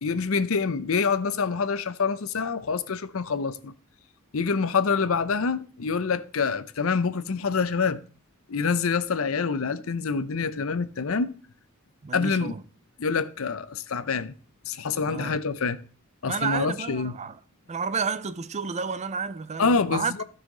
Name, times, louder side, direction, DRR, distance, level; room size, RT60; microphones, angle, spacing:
voice 1, 0.0-3.7 4.3-8.0 8.5-11.3 12.1-12.5 13.0-14.3 14.7-15.8 16.2-17.1 19.6-20.2, left 5 dB, 70° left, 0.7 m, -26 dB
voice 2, 12.0-12.6 15.1-15.4 16.3-17.3 17.7-20.1, right 5 dB, 30° right, 0.5 m, -31 dB
15.0 x 5.7 x 3.8 m
head